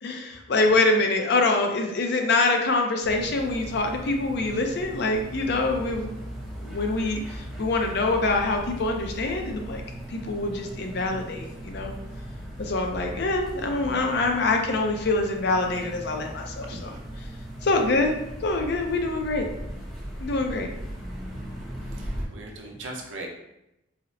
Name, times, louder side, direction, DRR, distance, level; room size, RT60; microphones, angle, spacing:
voice 1, 0.0-6.1 6.6-9.8 10.1-11.9 12.6-16.9 17.6-18.1 18.4-19.5 20.2-20.7, left 2 dB, 55° left, 3 dB, 0.4 m, -25 dB
sound 1, 3.0-22.3, equal, ahead, 0.6 m, -38 dB
voice 2, 16.6-17.0 21.9-23.3, right 2 dB, 80° right, 1 dB, 0.6 m, -39 dB
4.1 x 2.0 x 2.6 m, 0.88 s
head